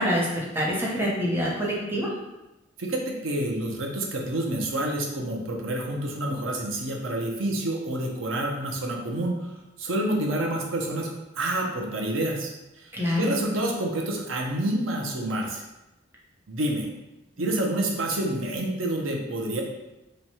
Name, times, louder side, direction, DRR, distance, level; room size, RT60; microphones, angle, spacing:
voice 1, 0.0-2.1 12.9-13.3 17.4-17.5, equal, 10° right, -4 dB, 0.8 m, -26 dB
voice 2, 2.8-15.6 16.5-16.9 17.4-19.6, right 1 dB, 80° right, 1 dB, 0.6 m, -28 dB
3.1 x 2.3 x 4.1 m, 1.0 s
head